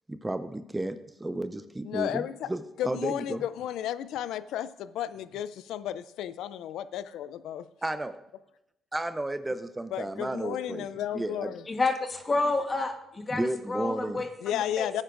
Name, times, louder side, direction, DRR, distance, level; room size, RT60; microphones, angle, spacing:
voice 1, 0.1-3.4 7.8-8.1 8.9-10.9 11.1-11.5 13.3-14.2, right 1 dB, 15° right, 10 dB, 0.5 m, -33 dB
voice 2, 1.8-2.5 2.8-7.7 9.9-11.6 14.4-15.0, left 11 dB, 85° left, 15 dB, 0.4 m, -33 dB
voice 3, 11.7-14.9, left 3 dB, 30° left, 5 dB, 1.3 m, -30 dB
18.0 x 9.6 x 2.6 m, 0.84 s
cardioid pair, 90°, 0 cm